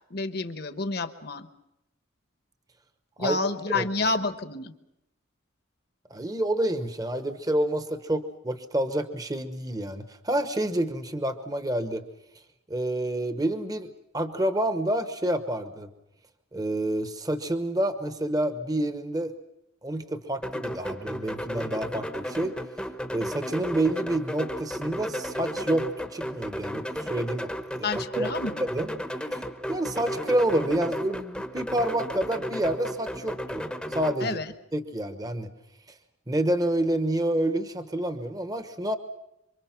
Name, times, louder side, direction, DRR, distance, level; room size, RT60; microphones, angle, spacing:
voice 1, 0.1-1.5 3.2-4.7 27.8-28.6 34.2-34.5, left 3 dB, 50° left, 10 dB, 1.2 m, -29 dB
voice 2, 6.1-12.0 12.7-15.9 16.5-19.3 19.8-22.6 23.1-27.5 27.8-27.9 28.1-28.3 28.6-28.9 29.3-29.4 29.7-34.4 34.7-35.5 36.3-39.0, right 1 dB, 20° right, 9 dB, 1.0 m, -28 dB
sound 1, 20.4-34.1, equal, 5° left, 0.9 m, -34 dB
26.5 x 24.0 x 5.9 m, 0.87 s
head